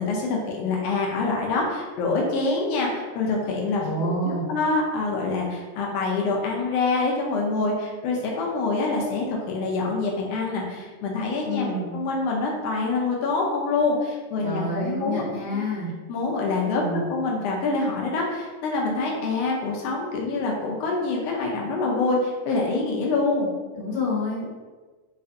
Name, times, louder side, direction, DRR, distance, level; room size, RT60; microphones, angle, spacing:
voice 1, 0.0-15.2 15.5-15.6 16.1-16.8 17.1-23.5, left 3 dB, 90° left, -2 dB, 1.4 m, -26 dB
voice 2, 3.8-4.4 11.4-11.9 14.4-15.9 16.7-17.1 23.7-24.5, left 1 dB, 65° left, -6 dB, 2.1 m, -28 dB
5.1 x 2.4 x 2.6 m, 1.3 s
omnidirectional pair, 3.5 m